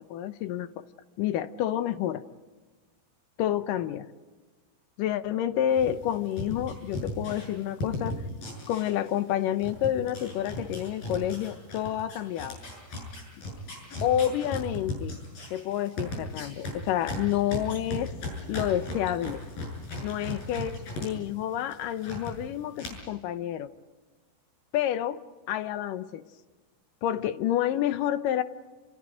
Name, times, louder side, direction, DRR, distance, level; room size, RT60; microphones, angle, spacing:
voice 1, 0.1-0.7 1.2-2.2 3.4-4.1 5.0-8.2 8.7-12.6 14.0-15.2 15.5-18.1 18.5-19.4 20.0-23.7 24.7-25.2 25.5-26.2 27.0-28.4, left 11 dB, 75° left, 11 dB, 2.1 m, -29 dB
sound 1, 5.8-9.3 9.6-21.1 21.4-22.3 22.8-22.9, left 1 dB, 55° left, 8.7 m, -36 dB
28.5 x 28.0 x 5.1 m, 1.3 s
omnidirectional pair, 4.9 m